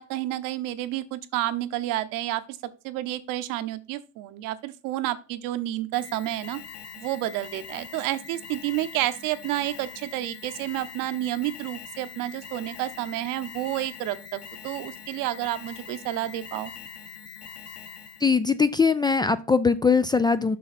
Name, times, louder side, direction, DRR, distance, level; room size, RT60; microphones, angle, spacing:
voice 1, 0.0-2.6 2.8-6.6 7.0-16.7, right 15 dB, 70° right, 12 dB, 0.9 m, -30 dB
Alarm, 5.9-18.3, left 7 dB, 45° left, 1.4 m, -43 dB
voice 2, 18.2-20.6, left 5 dB, 15° left, 13 dB, 0.3 m, -21 dB
6.8 x 5.8 x 4.2 m, 0.34 s
supercardioid pair, 110°, 34 cm